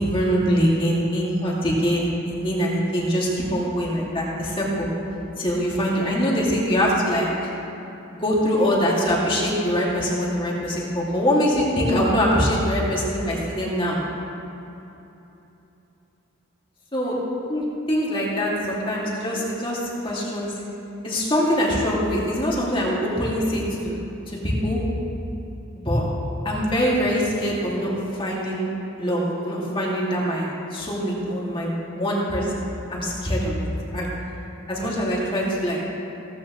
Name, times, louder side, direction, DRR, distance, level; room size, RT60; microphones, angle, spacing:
voice 1, 0.0-4.9 5.4-7.5 8.1-14.0 16.9-17.1 17.5-20.5 21.0-24.0 24.3-24.9 25.7-26.0 26.4-34.1 34.7-35.8, equal, 25° left, -5 dB, 2.3 m, -23 dB
16.5 x 14.0 x 3.1 m, 3.0 s
head